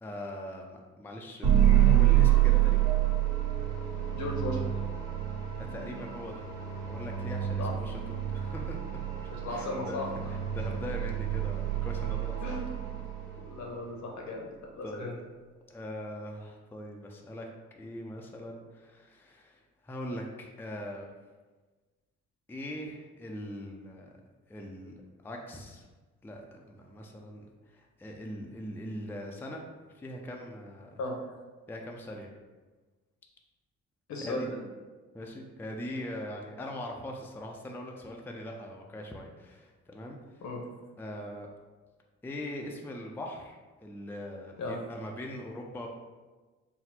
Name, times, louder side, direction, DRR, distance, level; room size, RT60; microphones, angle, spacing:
voice 1, 0.0-2.8 5.7-6.4 6.8-8.8 9.5-12.5 14.8-15.1 15.7-17.5 17.8-21.1 22.5-24.1 24.5-24.9 25.2-25.9 26.2-29.6 29.9-31.0 31.7-32.3 34.2-34.5 35.1-40.4 41.0-41.5 42.2-45.9, left 1 dB, 5° left, 1 dB, 0.4 m, -41 dB
sound 1, 1.4-13.6, right 12 dB, 85° right, 1.3 m, -27 dB
voice 2, 4.1-4.7 7.6-7.7 9.4-10.1 12.4-12.7 13.3-15.1 31.0-31.2 34.1-34.5 40.4-40.6 44.6-44.8, left 2 dB, 70° left, 0 dB, 1.0 m, -36 dB
4.1 x 2.0 x 4.2 m, 1.3 s
cardioid pair, 90°, 30 cm